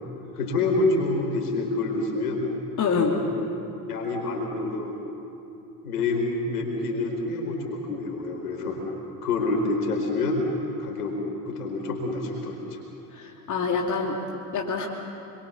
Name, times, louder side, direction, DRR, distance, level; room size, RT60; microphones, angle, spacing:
voice 1, 0.4-2.4 2.9-3.3 3.9-4.9 5.8-8.9 9.2-10.4 10.8-11.1 11.5-12.8, left 3 dB, 70° left, 1 dB, 4.8 m, -27 dB
voice 2, 2.8-3.1 13.1-14.2 14.5-14.9, left 5 dB, 40° left, 0 dB, 2.7 m, -26 dB
28.0 x 22.5 x 7.1 m, 2.9 s
figure-of-eight pair, 60°, 47 cm